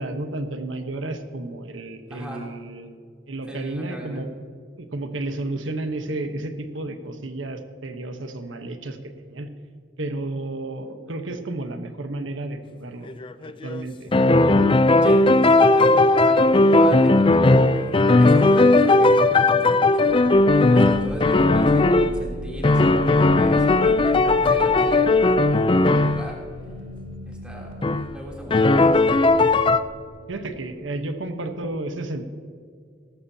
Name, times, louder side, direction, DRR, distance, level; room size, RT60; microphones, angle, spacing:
voice 1, 0.0-2.9 3.3-4.3 4.8-9.5 10.0-13.1 13.4-14.1 25.9-26.1 30.3-32.3, right 2 dB, 90° right, 7 dB, 1.1 m, -32 dB
voice 2, 2.1-2.5 3.5-4.2 15.0-26.4 27.3-27.8 28.1-29.3, equal, 5° right, -4 dB, 3.1 m, -38 dB
sound 1, 13.1-13.8 14.1-22.1 22.6-26.3 27.8-28.1 28.5-29.8, left 2 dB, 25° left, 0.4 m, -17 dB
sound 2, 20.0-30.6, left 1 dB, 85° left, 1.5 m, -38 dB
17.5 x 14.5 x 2.8 m, 2.3 s
head